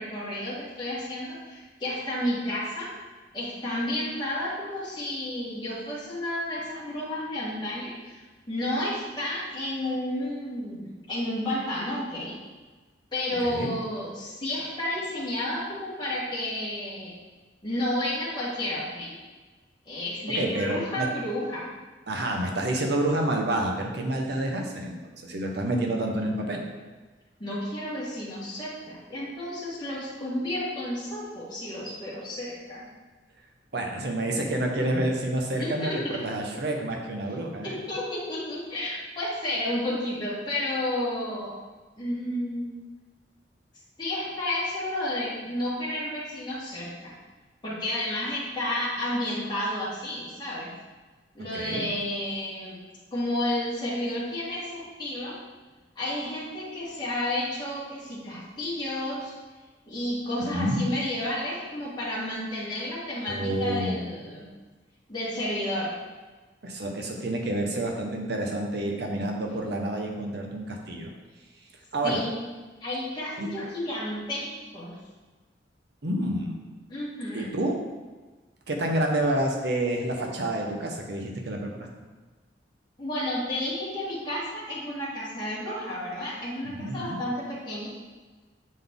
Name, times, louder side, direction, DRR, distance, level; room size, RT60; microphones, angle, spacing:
voice 1, 0.0-2.9 3.3-8.2 8.5-12.3 13.1-17.1 17.6-19.1 19.8-21.7 27.4-32.8 35.6-36.2 37.6-41.6 42.0-42.7 44.0-47.1 47.6-50.7 51.3-52.8 53.1-55.4 55.9-59.3 59.9-64.5 65.1-65.9 72.0-72.3 72.8-74.9 76.9-77.5 83.0-87.9, left 1 dB, 25° left, -9 dB, 1.6 m, -31 dB
voice 2, 20.3-21.1 22.1-26.6 33.7-37.8 51.5-51.9 60.5-60.8 63.3-64.0 66.6-71.1 71.9-72.2 73.4-73.5 76.0-76.6 77.3-77.7 78.7-81.9 86.7-87.2, right 1 dB, 60° right, 2 dB, 0.8 m, -28 dB
7.5 x 3.9 x 3.6 m, 1.3 s
head